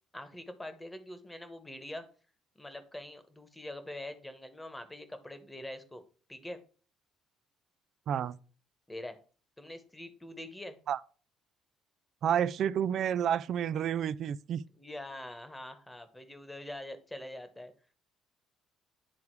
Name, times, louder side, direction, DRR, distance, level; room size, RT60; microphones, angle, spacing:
voice 1, 0.1-2.0 2.6-6.0 6.3-6.6 8.9-9.2 9.6-10.8 14.8-17.7, left 1 dB, 10° left, 1.2 m, -44 dB
voice 2, 8.1-8.4 10.9-11.0 12.2-14.6, right 9 dB, 60° right, 0.4 m, -30 dB
9.9 x 3.5 x 4.6 m
cardioid pair, 100°, 0 cm